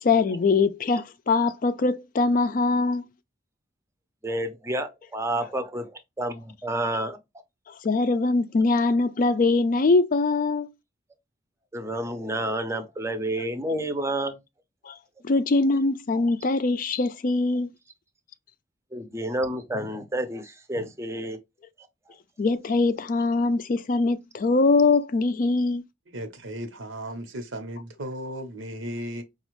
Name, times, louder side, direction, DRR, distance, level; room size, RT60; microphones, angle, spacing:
voice 1, 0.0-3.0 7.7-10.7 14.8-15.0 15.2-17.7 22.4-25.8, left 3 dB, 45° left, 0.4 m, -22 dB
voice 2, 4.2-7.2 11.7-14.3 18.9-21.4, right 1 dB, 15° right, 0.6 m, -30 dB
voice 3, 26.1-29.2, equal, 85° right, 1.0 m, -35 dB
5.0 x 2.4 x 3.1 m
head